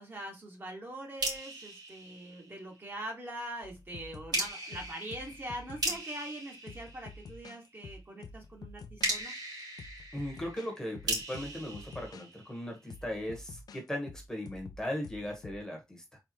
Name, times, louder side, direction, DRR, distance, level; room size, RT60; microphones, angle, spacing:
voice 1, 0.0-9.3, right 1 dB, 30° right, 1 dB, 1.5 m, -43 dB
sound 1, 1.2-2.9 4.3-7.6 9.0-12.9, right 2 dB, 90° right, 2.7 m, -38 dB
sound 2, 3.6-6.1 6.7-9.2 9.6-12.3 12.9-15.7, left 4 dB, 75° left, 0.4 m, -49 dB
voice 2, 10.1-16.0, left 1 dB, 10° left, 1 dB, 1.2 m, -38 dB
4.2 x 3.4 x 2.9 m, 0.21 s
wide cardioid pair, 155°, 7 cm